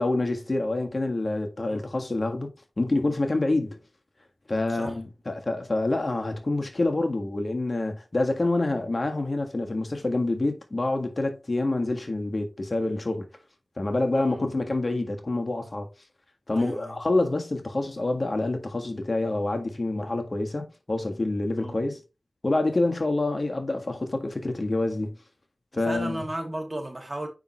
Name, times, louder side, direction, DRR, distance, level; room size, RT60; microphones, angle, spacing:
voice 1, 0.0-2.5 2.8-3.8 4.5-13.3 13.8-15.9 16.5-22.0 22.4-25.2 25.7-26.3, left 2 dB, 50° left, 1.6 m, -27 dB
voice 2, 14.1-14.4 16.5-17.0 21.6-21.8 25.8-27.3, right 1 dB, 35° right, 2.6 m, -35 dB
6.9 x 5.6 x 3.1 m
cardioid pair, 40°, 0 cm